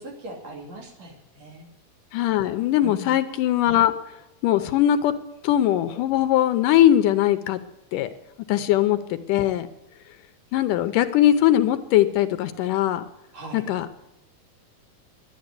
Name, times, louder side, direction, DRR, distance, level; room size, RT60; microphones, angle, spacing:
voice 1, 0.0-1.7 2.8-3.2 8.6-8.7 13.3-13.6, right 1 dB, 55° right, 0 dB, 3.7 m, -40 dB
voice 2, 2.1-3.9 4.4-5.2 5.4-7.6 7.9-8.1 8.5-9.7 10.5-13.0 13.5-13.9, left 12 dB, 80° left, 11 dB, 2.3 m, -20 dB
11.5 x 10.5 x 9.7 m, 0.93 s
omnidirectional pair, 3.9 m